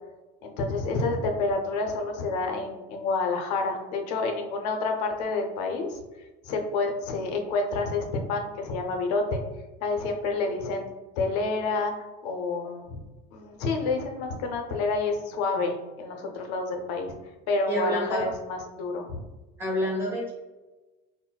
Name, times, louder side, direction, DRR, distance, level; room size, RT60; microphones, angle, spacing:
voice 1, 0.4-6.0 6.4-9.4 9.8-10.9 11.2-11.9 12.2-13.0 13.3-17.1 17.5-19.2, left 3 dB, 90° left, 4 dB, 0.6 m, -28 dB
voice 2, 17.7-18.3 19.6-20.3, equal, 10° right, -6 dB, 0.9 m, -28 dB
3.9 x 2.1 x 2.2 m, 1.1 s
cardioid pair, 175°, 20 cm